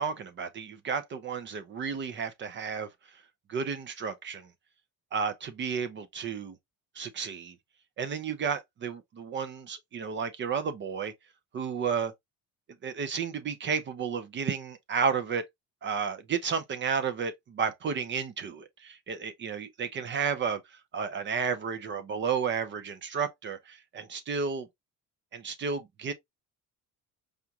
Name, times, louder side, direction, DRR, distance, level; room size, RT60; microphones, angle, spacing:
voice 1, 0.0-2.9 3.5-4.5 5.1-6.5 7.0-7.5 8.0-11.1 11.5-12.1 12.8-15.4 15.8-24.7 25.3-26.1, right 6 dB, 35° right, 0.4 m, -32 dB
4.9 x 2.3 x 2.7 m
cardioid pair, 175°, 36 cm